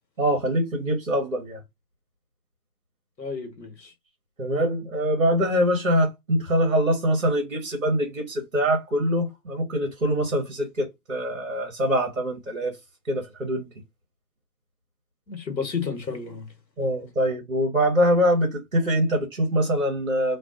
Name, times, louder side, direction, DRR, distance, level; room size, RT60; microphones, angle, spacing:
voice 1, 0.2-1.6 4.4-12.8 13.0-13.7 16.8-20.4, equal, 50° right, 0.8 m, -24 dB
voice 2, 3.2-3.9 15.3-16.5, left 5 dB, 85° left, 1.1 m, -32 dB
2.4 x 2.2 x 2.4 m
figure-of-eight pair, 175°, 50 cm